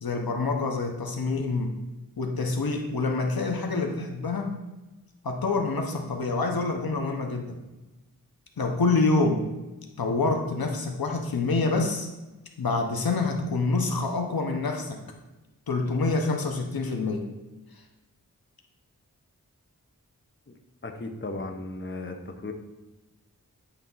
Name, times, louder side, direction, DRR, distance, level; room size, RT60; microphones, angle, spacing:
voice 1, 0.0-1.7 2.2-4.6 5.2-7.6 8.6-9.5 10.0-12.1 12.6-15.0 15.7-17.3, left 3 dB, 85° left, 3 dB, 1.1 m, -26 dB
voice 2, 20.8-22.5, left 2 dB, 35° left, 5 dB, 0.9 m, -36 dB
10.0 x 3.5 x 5.6 m, 1.1 s
wide cardioid pair, 60°, 35 cm